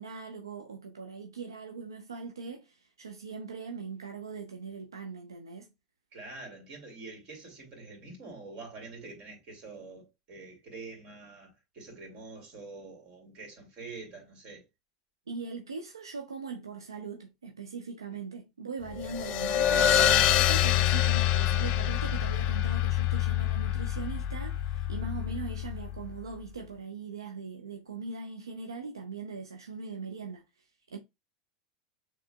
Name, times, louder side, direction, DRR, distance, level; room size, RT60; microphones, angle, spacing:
voice 1, 0.0-5.7 15.3-31.0, right 4 dB, 90° right, 0.6 m, -40 dB
voice 2, 6.1-14.6, right 3 dB, 50° right, 2.7 m, -46 dB
sound 1, 19.0-26.0, left 11 dB, 45° left, 0.6 m, -26 dB
6.9 x 3.2 x 2.3 m
hypercardioid pair, 90°, 2 cm